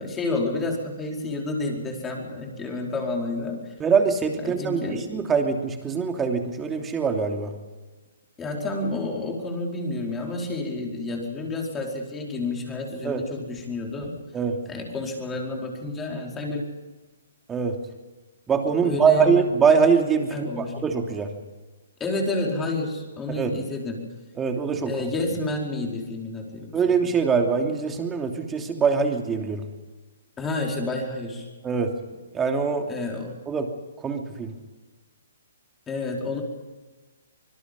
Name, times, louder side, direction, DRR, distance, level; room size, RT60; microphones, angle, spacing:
voice 1, 0.0-3.7 4.4-5.2 8.4-14.1 14.6-16.6 18.8-19.4 20.3-20.8 22.0-24.1 24.9-26.7 30.4-31.5 32.9-33.4 35.9-36.4, left 2 dB, 15° left, 1 dB, 4.7 m, -30 dB
voice 2, 3.8-7.5 13.0-13.2 14.3-14.6 17.5-17.8 18.5-21.3 23.4-23.5 24.4-24.9 26.7-29.6 31.6-31.9 32.3-32.9 33.5-33.7 34.0-34.5, right 5 dB, 15° right, 3 dB, 2.9 m, -23 dB
25.5 x 21.5 x 5.6 m, 1.3 s
hypercardioid pair, 150°, 0 cm